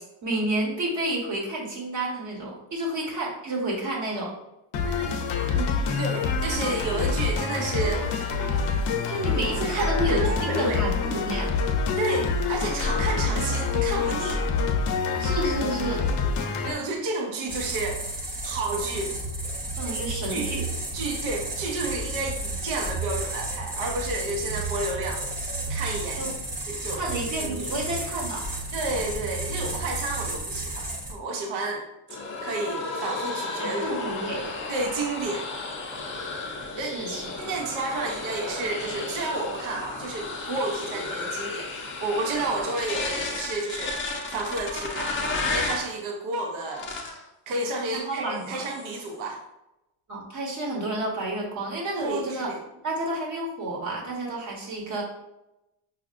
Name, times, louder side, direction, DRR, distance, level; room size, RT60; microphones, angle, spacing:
voice 1, 0.2-4.3 9.1-11.5 15.2-16.0 19.8-20.7 26.1-26.3 27.0-28.6 33.6-34.5 36.8-37.2 47.9-48.7 50.1-52.6 52.8-55.0, right 1 dB, 35° right, -2 dB, 1.2 m, -30 dB
sound 1, 4.7-16.7, left 4 dB, 60° left, 0.7 m, -26 dB
voice 2, 5.5-8.0 9.6-10.8 12.0-14.5 16.6-18.0 18.4-19.2 19.8-19.9 20.3-20.5 20.9-25.2 25.7-26.2 26.7-27.0 27.4-27.7 28.7-31.8 32.4-34.0 34.7-35.5 36.7-45.1 45.5-46.9 47.5-49.4 51.9-52.6, right 3 dB, 70° right, 1 dB, 0.9 m, -31 dB
sound 2, 17.5-31.1, right 2 dB, 20° right, 0.8 m, -32 dB
sound 3, 32.1-45.9 46.6-47.2 47.7-48.0 48.3-49.1, left 3 dB, 25° left, 0.5 m, -33 dB
5.5 x 2.4 x 2.5 m, 0.91 s
cardioid pair, 140°, 49 cm